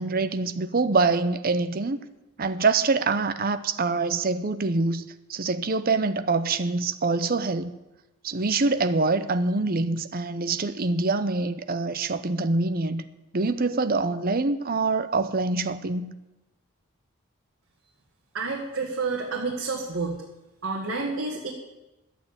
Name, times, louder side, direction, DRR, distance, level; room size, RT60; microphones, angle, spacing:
voice 1, 0.0-2.0 2.4-7.7 8.2-13.0 13.3-16.1, right 3 dB, 40° right, 11 dB, 0.7 m, -25 dB
voice 2, 18.3-20.2 20.6-21.5, right 4 dB, 60° right, -1 dB, 1.7 m, -29 dB
12.0 x 8.5 x 8.6 m, 1.0 s
head